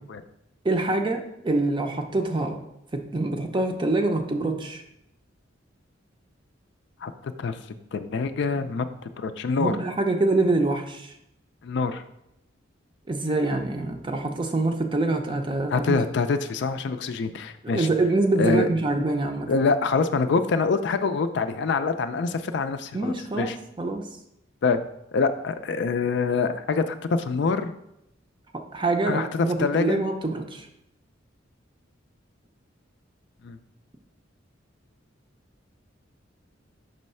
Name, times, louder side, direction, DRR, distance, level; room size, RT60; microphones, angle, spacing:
voice 1, 0.6-2.6 2.9-4.8 9.6-11.1 13.1-16.0 17.6-19.5 22.9-24.1 28.5-30.7, right 2 dB, 25° right, 5 dB, 0.5 m, -25 dB
voice 2, 7.0-7.6 7.9-8.9 9.2-9.8 11.6-12.0 15.7-17.9 18.4-18.7 19.5-23.6 24.6-24.8 25.1-27.7 29.1-30.0 33.4-33.6, left 4 dB, 60° left, 9 dB, 0.4 m, -25 dB
5.4 x 3.1 x 5.5 m, 0.81 s
head